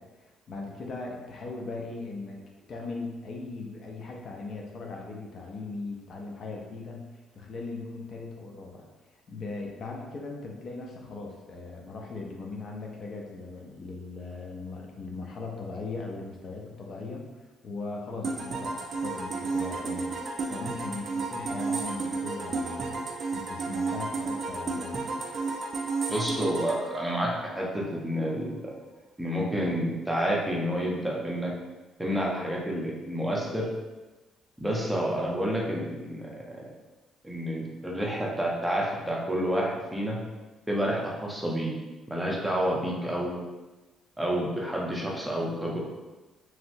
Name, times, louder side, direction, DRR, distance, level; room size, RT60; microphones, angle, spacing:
voice 1, 0.0-2.4 2.7-7.1 7.3-8.8 9.3-17.3 17.6-20.2 20.5-23.0 23.3-25.0, left 3 dB, 55° left, -1 dB, 0.5 m, -39 dB
sound 1, 18.2-27.9, right 3 dB, 50° right, 0.4 m, -32 dB
voice 2, 26.1-28.7 29.2-31.5 32.0-33.7 34.6-36.3 37.2-40.2 40.7-41.7 42.1-43.3 44.2-45.8, equal, 10° right, -3 dB, 0.7 m, -29 dB
3.2 x 2.8 x 2.6 m, 1.2 s
cardioid pair, 90°, 0 cm